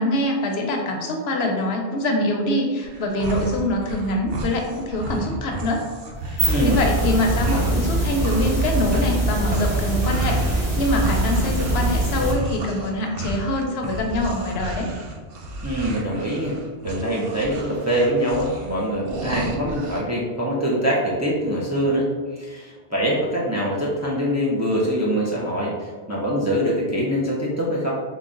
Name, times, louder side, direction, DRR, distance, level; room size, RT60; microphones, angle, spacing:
voice 1, 0.0-5.9 6.3-14.9, left 1 dB, 80° left, 1 dB, 0.9 m, -24 dB
sound 1, 2.8-7.9 8.2-20.0, right 2 dB, 65° right, 0.8 m, -32 dB
sound 2, 6.2-12.3, right 2 dB, 5° right, 1.2 m, -23 dB
voice 2, 6.5-6.8 15.6-16.6 16.8-27.9, equal, 25° right, -5 dB, 0.4 m, -24 dB
3.8 x 2.3 x 3.7 m, 1.4 s
omnidirectional pair, 1.1 m